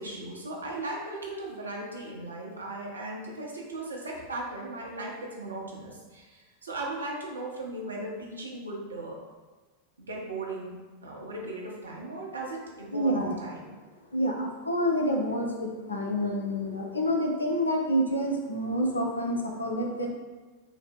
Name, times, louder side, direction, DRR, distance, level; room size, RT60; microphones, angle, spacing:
voice 1, 0.0-9.2 10.0-10.8 11.0-13.7, right 2 dB, 85° right, -2 dB, 0.8 m, -37 dB
voice 2, 12.9-13.4 14.1-20.1, equal, 85° left, 0 dB, 0.6 m, -28 dB
3.9 x 2.1 x 4.4 m, 1.3 s
figure-of-eight pair, 90°, 0 cm